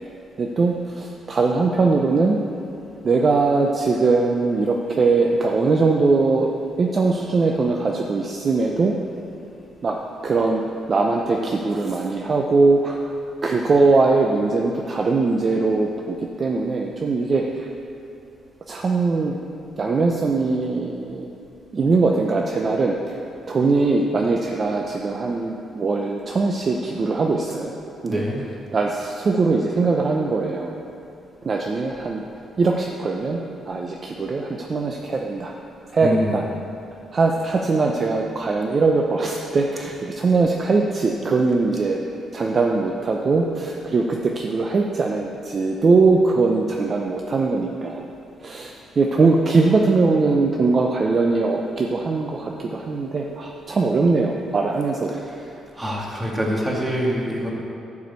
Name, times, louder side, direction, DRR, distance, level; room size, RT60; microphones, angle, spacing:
voice 1, 0.4-2.4 3.0-6.5 6.8-8.9 9.8-10.0 10.2-10.6 10.9-13.1 13.4-17.7 18.7-19.4 19.8-21.3 21.7-23.2 23.5-27.7 28.0-28.2 28.7-30.8 31.4-32.2 32.6-35.5 35.9-36.4 37.1-42.0 42.3-48.1 48.4-55.2, right 3 dB, 40° right, 1 dB, 0.7 m, -21 dB
voice 2, 28.0-28.4 36.0-36.4 55.8-57.5, equal, 15° right, -3 dB, 2.1 m, -25 dB
11.5 x 4.9 x 8.2 m, 2.7 s
cardioid pair, 110°, 0 cm